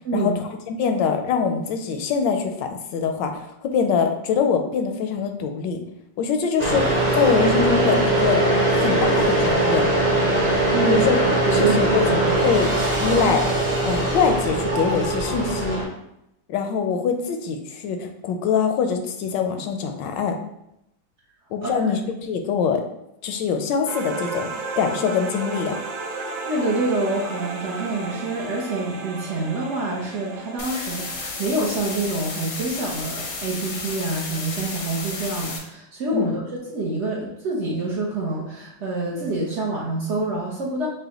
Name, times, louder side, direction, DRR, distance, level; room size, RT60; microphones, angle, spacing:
voice 1, 0.7-5.8 6.2-8.5 8.8-9.9 10.9-11.2 11.5-12.2 12.4-12.7 13.0-13.4 13.8-15.8 16.5-20.4 21.5-22.0 22.3-22.8 23.2-25.8 36.1-36.3, left 6 dB, 75° left, 6 dB, 1.2 m, -23 dB
sound 1, 6.6-15.8, right 1 dB, 30° right, 0.9 m, -21 dB
voice 2, 10.7-11.1 11.5-12.4 21.6-22.0 26.5-40.9, right 2 dB, 65° right, -4 dB, 0.7 m, -26 dB
sound 2, 23.9-32.5, right 3 dB, 85° right, 1.4 m, -34 dB
sound 3, 30.6-35.6, left 3 dB, 60° left, 0.8 m, -32 dB
6.3 x 2.1 x 2.9 m, 0.82 s
omnidirectional pair, 2.0 m